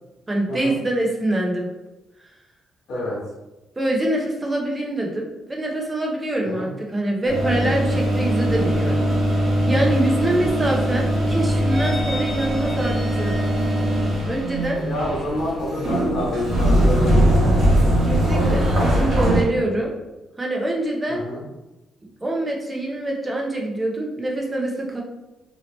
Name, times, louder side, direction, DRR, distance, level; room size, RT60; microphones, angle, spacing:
voice 1, 0.3-1.7 3.8-13.3 14.3-14.8 18.0-19.9 20.4-21.2 22.2-25.0, right 1 dB, 20° right, -1 dB, 0.8 m, -25 dB
voice 2, 2.9-3.2 6.5-6.7 14.8-17.7 21.1-21.4, left 1 dB, 70° left, -6 dB, 0.9 m, -27 dB
sound 1, 7.3-19.4, equal, 60° right, 1.1 m, -21 dB
2.8 x 2.8 x 3.1 m, 1.0 s
cardioid pair, 90°, 0 cm